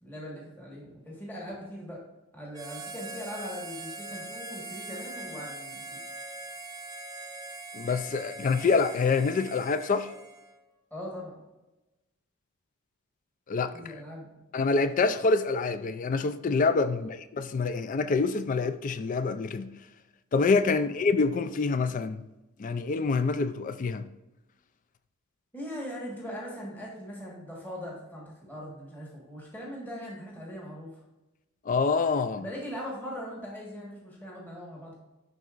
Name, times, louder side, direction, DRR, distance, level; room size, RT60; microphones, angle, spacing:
voice 1, 0.0-2.0 2.3-6.0 10.9-11.4 13.7-14.4 25.5-31.0 32.4-34.9, equal, 10° left, 1.4 m, -40 dB
Harmonica, 2.5-10.6, right 2 dB, 15° right, 0.6 m, -42 dB
voice 2, 7.7-10.1 13.5-13.7 14.5-19.7 20.3-22.2 22.6-24.1 31.7-32.4, left 4 dB, 35° left, 0.3 m, -26 dB
10.5 x 4.0 x 2.4 m
head